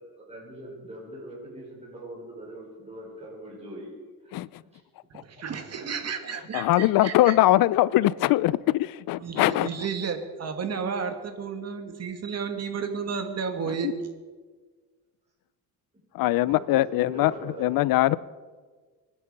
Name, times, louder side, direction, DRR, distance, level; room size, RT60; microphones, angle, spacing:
voice 1, 0.2-3.9 4.2-4.3 4.7-4.8 5.6-6.2 16.3-17.8, right 1 dB, 15° right, 6.1 m, -42 dB
voice 2, 5.1-7.4 9.2-14.1, right 6 dB, 45° right, 2.3 m, -32 dB
voice 3, 6.5-9.7 13.7-13.9 16.1-17.3 17.6-18.2, left 16 dB, 70° left, 0.6 m, -22 dB
25.5 x 10.0 x 5.4 m
cardioid pair, 110°, 36 cm